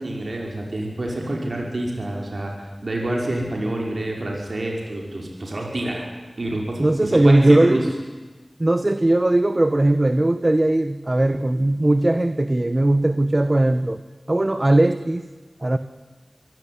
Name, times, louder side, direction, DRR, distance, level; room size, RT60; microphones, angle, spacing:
voice 1, 0.0-6.1 6.4-7.8, right 1 dB, 75° right, 0 dB, 5.4 m, -27 dB
voice 2, 6.8-7.9 8.6-14.0 14.3-15.3 15.6-15.8, right 1 dB, 40° right, 11 dB, 1.1 m, -18 dB
25.0 x 17.0 x 9.7 m, 1.3 s
wide cardioid pair, 45°, 0 cm